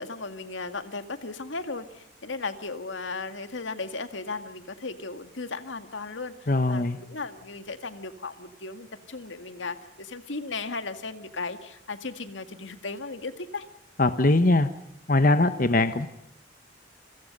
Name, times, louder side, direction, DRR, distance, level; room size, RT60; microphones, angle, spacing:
voice 1, 0.0-13.7, left 3 dB, 90° left, 9 dB, 2.0 m, -36 dB
voice 2, 6.5-7.0 14.0-14.7 15.1-16.1, left 2 dB, 45° left, 11 dB, 1.1 m, -21 dB
29.0 x 23.0 x 5.4 m, 0.79 s
head